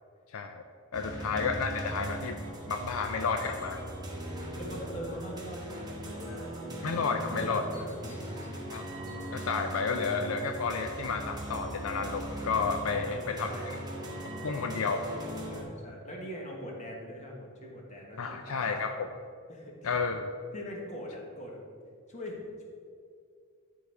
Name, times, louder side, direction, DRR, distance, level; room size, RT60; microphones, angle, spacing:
voice 1, 0.3-0.6 0.9-2.4 2.7-3.8 6.8-7.6 8.7-8.8 9.3-13.5 14.4-15.0 18.2-19.1 19.8-20.3, left 5 dB, 75° left, 6 dB, 0.5 m, -31 dB
sound 1, 0.9-15.6, right 1 dB, 20° right, 1.3 m, -39 dB
voice 2, 4.6-6.9 7.2-8.6 12.8-13.7 15.4-18.8 19.5-20.0 20.5-21.6 22.1-22.6, equal, 35° left, -1 dB, 1.5 m, -42 dB
11.5 x 4.0 x 4.7 m, 2.2 s
head